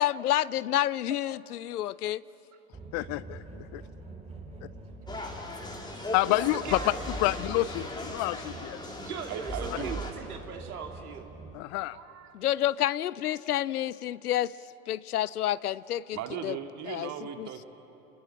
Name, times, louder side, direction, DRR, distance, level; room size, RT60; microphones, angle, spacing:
voice 1, 0.0-2.2 12.3-14.5 14.9-16.2 16.4-16.6 16.9-17.1 17.4-17.5, left 12 dB, 80° left, 21 dB, 0.6 m, -29 dB
sound 1, 2.7-11.6, right 3 dB, 15° right, 3.5 m, -46 dB
voice 2, 2.9-3.8 6.1-6.8 7.2-8.8 11.5-12.0, left 18 dB, 40° left, 18 dB, 0.5 m, -28 dB
sound 2, 5.1-10.1, left 1 dB, 10° left, 3.0 m, -37 dB
voice 3, 6.5-7.0 9.0-11.3, right 6 dB, 75° right, 3 dB, 2.9 m, -40 dB
voice 4, 9.3-10.0 11.9-12.4 16.1-17.6, right 9 dB, 40° right, 5 dB, 2.3 m, -38 dB
29.0 x 20.5 x 7.7 m, 3.0 s
hypercardioid pair, 95°, 44 cm